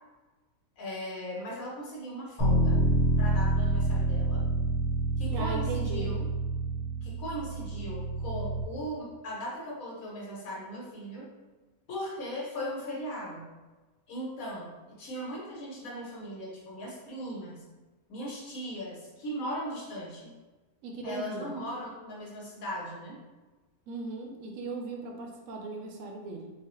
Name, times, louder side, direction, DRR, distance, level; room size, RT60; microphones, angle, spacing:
voice 1, 0.8-2.8 3.2-4.5 5.2-6.3 7.0-11.3 11.9-13.5 14.1-17.7 18.1-20.3 21.0-23.2, equal, 70° left, -3 dB, 1.3 m, -38 dB
Bass guitar, 2.4-8.6, right 1 dB, ahead, 0.8 m, -27 dB
voice 2, 5.3-6.1 20.8-21.5 23.9-26.5, right 3 dB, 70° right, 2 dB, 0.9 m, -38 dB
4.0 x 2.1 x 2.9 m, 1.2 s
omnidirectional pair, 1.6 m